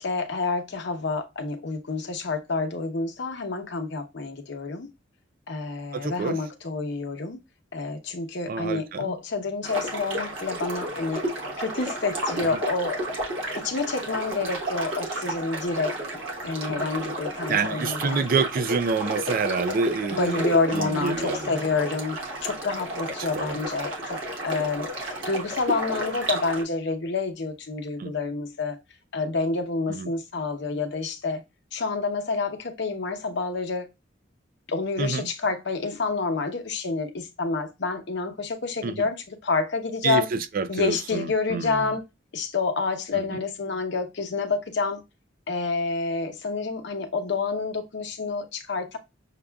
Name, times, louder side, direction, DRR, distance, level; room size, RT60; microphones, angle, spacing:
voice 1, 0.0-4.9 5.5-7.4 7.7-13.0 13.5-15.9 16.4-18.3 20.1-28.8 29.1-31.4 31.7-33.9 34.7-40.3 40.7-42.0 42.3-45.0 45.5-49.0, left 3 dB, 65° left, 0.8 m, -28 dB
voice 2, 5.9-6.4 8.5-9.1 16.7-16.8 17.5-21.5 23.3-23.6 28.0-28.1 29.9-30.1 35.0-35.3 38.8-39.1 40.0-41.9 43.1-43.4, right 5 dB, 50° right, 0.4 m, -28 dB
sound 1, 9.6-26.6, right 1 dB, 80° right, 1.1 m, -32 dB
6.6 x 2.3 x 2.3 m
head